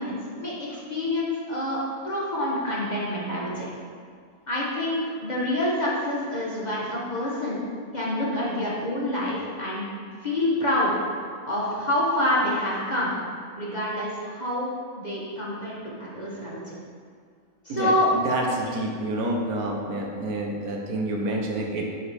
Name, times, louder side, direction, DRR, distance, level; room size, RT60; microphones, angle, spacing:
voice 1, 0.0-1.8 2.0-3.7 4.5-7.6 7.9-9.8 10.2-10.9 11.5-13.1 13.6-16.6 17.6-18.1 18.6-18.7, left 1 dB, 30° left, -6 dB, 1.2 m, -27 dB
voice 2, 18.2-21.8, right 1 dB, 75° right, 0 dB, 1.4 m, -28 dB
11.5 x 4.1 x 3.4 m, 2.1 s
omnidirectional pair, 1.6 m